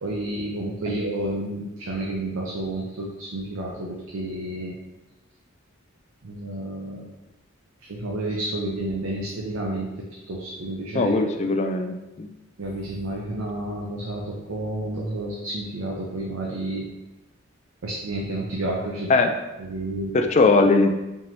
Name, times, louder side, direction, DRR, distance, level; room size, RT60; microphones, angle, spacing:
voice 1, 0.0-4.8 6.2-7.1 7.9-11.1 12.6-16.9 17.8-19.1 19.7-20.2, right 1 dB, 75° right, -2 dB, 0.6 m, -30 dB
voice 2, 10.9-12.3 19.1-19.3 20.1-20.9, left 3 dB, 35° left, 5 dB, 0.3 m, -20 dB
4.6 x 2.9 x 2.7 m, 1.0 s
head